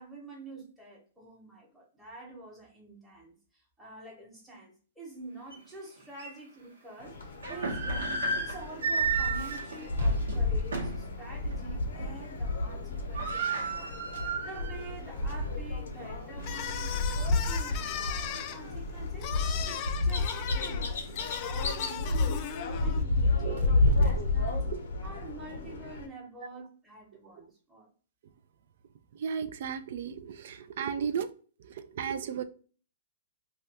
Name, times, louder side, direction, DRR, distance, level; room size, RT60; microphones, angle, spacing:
voice 1, 0.0-13.9 14.4-19.4 19.6-24.7 25.0-27.9, right 2 dB, 5° right, -5 dB, 1.0 m, -47 dB
sound 1, 5.5-5.6 6.2-6.3 7.2-11.1 11.5-11.6 12.0-12.4 12.7-12.8 12.9-14.9 15.3-15.4 16.0-17.4, right 4 dB, 90° right, 1.0 m, -33 dB
sound 2, 7.0-26.1, left 2 dB, 80° left, 0.6 m, -31 dB
sound 3, 16.4-23.0, left 9 dB, 40° left, 0.3 m, -38 dB
voice 2, 23.4-24.2 24.7-24.8 29.1-31.3 31.6-32.4, right 7 dB, 65° right, 11 dB, 0.3 m, -35 dB
2.6 x 2.3 x 3.3 m, 0.39 s
hypercardioid pair, 130°, 0 cm